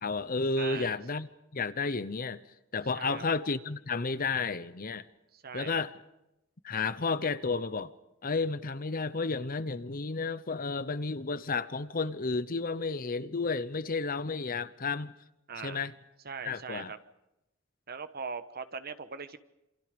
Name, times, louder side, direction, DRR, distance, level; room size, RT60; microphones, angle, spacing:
voice 1, 0.0-2.5 2.7-5.0 5.5-5.9 6.6-7.9 8.2-15.1 15.6-15.9 16.4-16.9, left 4 dB, 45° left, 0.9 m, -32 dB
voice 2, 0.6-1.0 2.9-3.2 5.3-5.8 15.5-15.9 16.2-17.0 17.9-19.4, right 5 dB, 50° right, 1.2 m, -40 dB
27.5 x 26.5 x 5.2 m
head